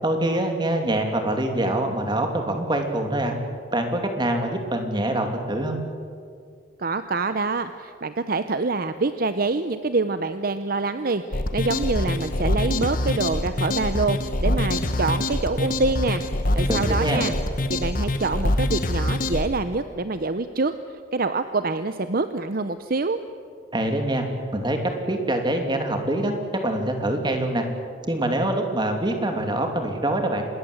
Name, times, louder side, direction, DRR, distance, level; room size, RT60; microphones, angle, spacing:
voice 1, 0.0-3.3 3.7-5.8 16.7-17.3 23.7-24.2 24.5-26.3 26.6-27.6 28.0-30.4, right 1 dB, 25° right, 4 dB, 2.9 m, -24 dB
voice 2, 6.8-16.2 16.6-17.3 17.7-20.7 21.1-23.2, right 3 dB, 50° right, 10 dB, 0.8 m, -26 dB
sound 1, 11.3-19.5, left 1 dB, 45° left, 1.4 m, -25 dB
26.0 x 20.5 x 8.0 m, 2.2 s
head